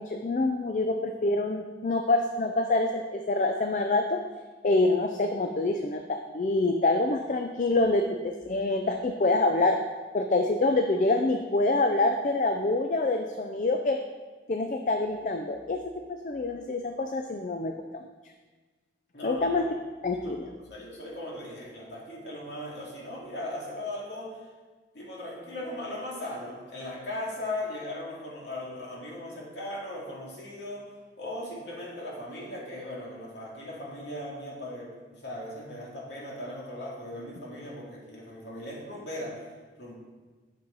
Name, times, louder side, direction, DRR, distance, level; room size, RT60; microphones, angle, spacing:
voice 1, 0.0-4.2 4.6-9.8 10.1-14.0 14.5-15.8 16.1-18.1 19.2-19.7 20.0-20.4, left 2 dB, 45° left, 5 dB, 0.4 m, -26 dB
voice 2, 19.1-19.5 20.2-24.4 24.9-30.9 31.2-39.4 39.8-39.9, left 1 dB, 85° left, -4 dB, 2.3 m, -38 dB
8.6 x 6.3 x 4.1 m, 1.3 s
head